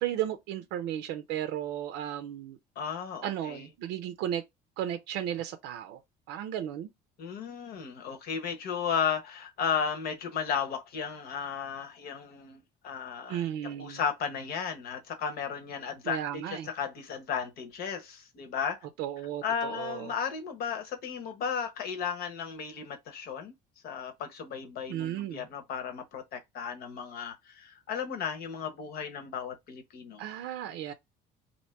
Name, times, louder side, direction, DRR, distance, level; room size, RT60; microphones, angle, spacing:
voice 1, 0.0-2.6 3.2-4.4 4.8-6.0 6.3-6.9 13.3-14.0 16.0-16.7 19.0-20.1 24.9-25.5 30.2-30.9, right 11 dB, 85° right, 0.5 m, -34 dB
voice 2, 2.8-3.7 7.2-18.8 19.4-23.5 23.8-30.2, left 7 dB, 65° left, 1.0 m, -34 dB
2.9 x 2.6 x 4.4 m
cardioid pair, 120°, 17 cm